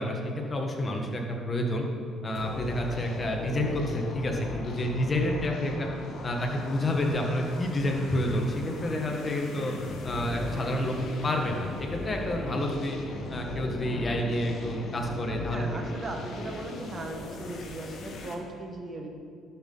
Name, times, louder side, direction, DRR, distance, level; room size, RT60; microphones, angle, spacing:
voice 1, 0.0-1.8 2.2-5.9 6.2-9.7 10.0-13.0 13.3-15.8, left 1 dB, 30° left, 1 dB, 1.4 m, -29 dB
sound 1, 2.3-18.3, left 2 dB, 65° left, 1.2 m, -38 dB
voice 2, 15.5-19.1, right 2 dB, 40° right, 3 dB, 1.2 m, -38 dB
11.5 x 5.9 x 3.9 m, 2.3 s
cardioid pair, 95°, 0 cm